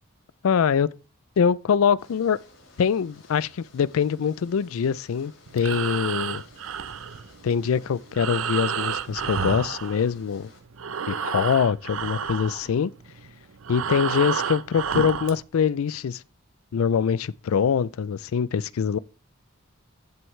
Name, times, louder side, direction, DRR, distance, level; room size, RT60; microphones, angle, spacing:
voice 1, 0.4-0.9 1.4-2.4 2.8-6.4 7.4-10.5 11.1-12.9 13.7-16.2 16.7-19.0, left 7 dB, 85° left, 0.4 m, -24 dB
sound 1, 2.0-10.6, left 2 dB, 65° left, 5.5 m, -54 dB
Breathing, 5.5-10.5 10.7-15.4, right 7 dB, 80° right, 0.6 m, -30 dB
14.0 x 7.7 x 3.2 m
head